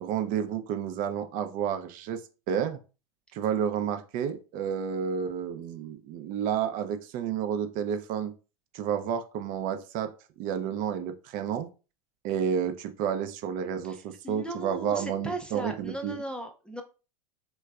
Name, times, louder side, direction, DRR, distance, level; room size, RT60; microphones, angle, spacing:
voice 1, 0.0-2.2 2.5-2.8 3.3-8.3 8.7-11.7 12.2-16.1, right 8 dB, 45° right, 8 dB, 0.5 m, -30 dB
voice 2, 13.8-16.8, right 1 dB, 5° left, 4 dB, 0.4 m, -38 dB
3.2 x 3.1 x 2.3 m, 0.33 s
hypercardioid pair, 100°, 20 cm